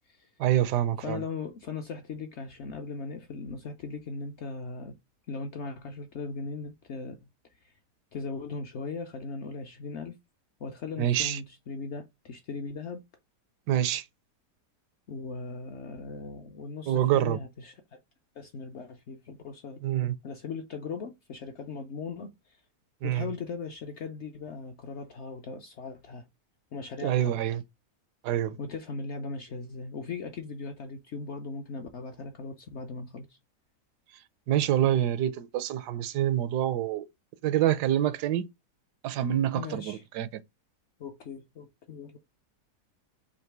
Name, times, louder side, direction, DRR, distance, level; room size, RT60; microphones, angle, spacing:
voice 1, 0.4-1.2 11.0-11.4 13.7-14.0 16.9-17.4 19.8-20.1 23.0-23.3 27.0-27.6 28.2-28.6 34.5-37.1 37.4-38.5 39.0-40.3, right 11 dB, 80° right, 1.2 m, -26 dB
voice 2, 1.0-4.9 5.3-7.2 7.6-7.7 8.1-10.2 10.6-13.0 15.1-18.0 18.4-19.8 20.2-22.6 23.0-26.2 26.7-27.3 28.6-33.4 39.5-40.0 41.0-42.2, left 4 dB, 65° left, 0.7 m, -38 dB
3.9 x 2.9 x 4.5 m
omnidirectional pair, 1.7 m